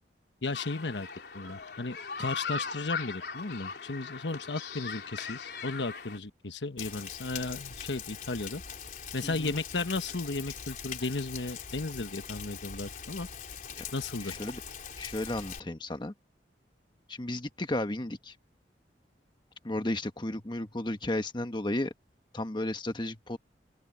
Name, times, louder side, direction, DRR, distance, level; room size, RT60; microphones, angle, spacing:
voice 1, 0.4-1.1 1.3-8.6 9.1-13.3 13.9-14.3, left 3 dB, 90° left, 1.2 m, -35 dB
sound 1, 0.5-6.2, left 5 dB, 65° left, 3.6 m, -39 dB
Rain, 6.8-15.6, left 7 dB, 50° left, 3.9 m, -42 dB
voice 2, 9.2-9.6 13.7-13.8 14.2-14.6 15.0-16.1 17.1-18.3 19.6-21.9 22.3-23.4, left 1 dB, 25° left, 1.3 m, -33 dB
open air
head